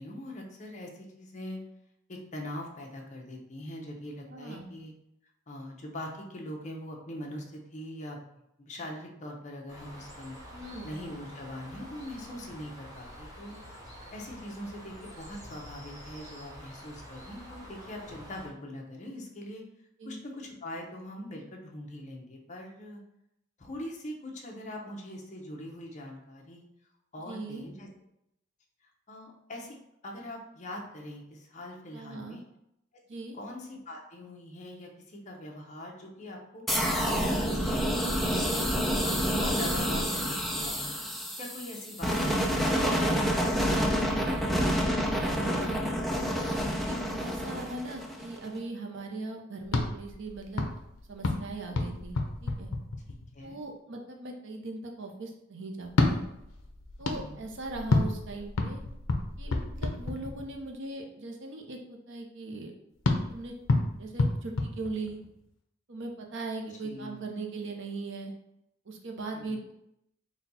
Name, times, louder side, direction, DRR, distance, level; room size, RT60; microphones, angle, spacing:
voice 1, 0.0-1.6 2.1-4.9 5.5-8.2 8.6-10.4 10.8-13.8 14.1-19.6 20.0-23.0 23.6-26.6 27.1-27.9 29.1-29.8 30.0-32.4 33.3-36.7 37.1-37.9 38.3-38.7 39.0-40.9 41.4-42.8 43.1-43.3 43.7-44.5 53.1-53.6 57.1-57.4 66.8-67.3 69.3-69.6, left 1 dB, 35° left, 0 dB, 0.7 m, -42 dB
voice 2, 4.3-4.7 10.5-10.9 20.0-20.2 27.3-27.7 31.9-32.4 33.1-33.4 42.5-42.9 45.4-46.3 46.7-50.7 51.1-52.7 53.4-56.2 57.0-58.8 59.4-62.7 63.3-63.5 64.0-65.2 65.9-68.3 68.9-69.7, right 2 dB, 65° right, 2 dB, 0.7 m, -39 dB
Bird, 9.7-18.5, equal, 20° right, 0.9 m, -47 dB
sound 1, 36.7-48.5, equal, ahead, 0.4 m, -28 dB
sound 2, 49.6-53.5 55.8-60.7 63.0-65.5, left 2 dB, 75° left, 0.6 m, -30 dB
4.2 x 2.3 x 4.0 m, 0.81 s
head